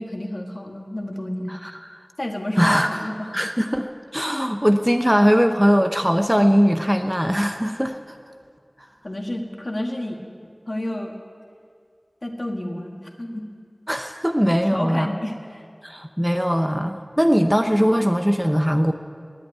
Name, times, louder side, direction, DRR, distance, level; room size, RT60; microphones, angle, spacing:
voice 1, 0.0-1.5 2.2-3.4 9.0-10.2 10.7-11.1 12.2-13.5 14.6-15.6, left 1 dB, 50° left, 2 dB, 1.9 m, -30 dB
voice 2, 2.6-3.9 4.1-8.0 13.9-15.1 15.8-18.9, equal, 5° right, 6 dB, 0.7 m, -20 dB
18.5 x 8.4 x 9.2 m, 2.2 s
wide cardioid pair, 45°, 0 cm